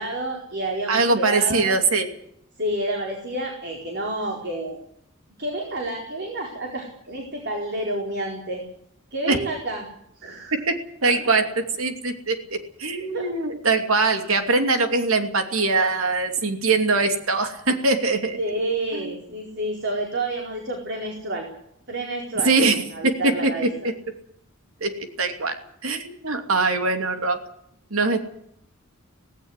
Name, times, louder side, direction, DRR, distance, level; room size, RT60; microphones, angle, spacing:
voice 1, 0.0-1.8 2.6-4.8 5.4-8.6 9.1-9.9 10.2-10.6 11.0-11.5 13.1-13.3 18.4-21.5 21.9-23.7, right 1 dB, 55° right, 1 dB, 4.5 m, -29 dB
voice 2, 0.9-2.1 9.3-9.4 10.5-10.8 11.0-11.4 11.8-18.4 18.9-19.1 22.4-22.8 23.0-23.5 23.8-23.9 24.8-25.6 25.8-27.4 27.9-28.2, right 3 dB, 85° right, 7 dB, 2.7 m, -22 dB
18.0 x 17.0 x 9.8 m, 0.70 s
head